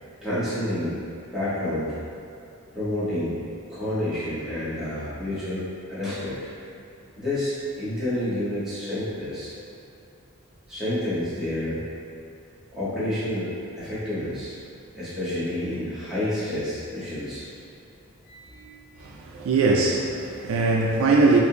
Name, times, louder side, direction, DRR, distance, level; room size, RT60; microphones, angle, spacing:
voice 1, 0.2-0.9 1.3-1.9 2.7-3.4 3.7-5.6 5.9-6.3 7.1-9.5 10.7-11.8 12.7-14.5 14.9-17.4 18.2-18.7, left 1 dB, ahead, -14 dB, 1.2 m, -29 dB
voice 2, 19.0-21.4, right 3 dB, 65° right, -1 dB, 0.4 m, -21 dB
4.2 x 2.6 x 2.7 m, 2.5 s
head